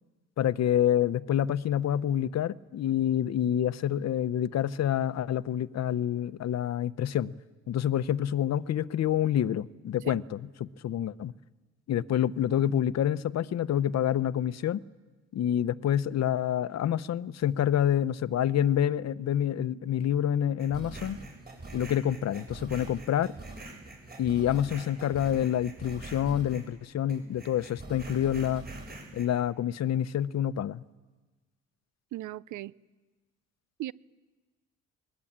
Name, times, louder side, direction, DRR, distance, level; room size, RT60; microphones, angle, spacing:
voice 1, 0.4-7.3 7.7-11.3 11.9-14.8 15.3-21.2 21.7-23.3 24.2-28.6 29.1-30.8, left 10 dB, 60° left, 0.8 m, -27 dB
sound 1, 20.6-26.8 27.1-29.3, right 2 dB, 30° right, 7.8 m, -44 dB
voice 2, 32.1-32.7 33.8-33.9, right 15 dB, 75° right, 0.7 m, -37 dB
21.5 x 21.0 x 8.8 m
cardioid pair, 90°, 30 cm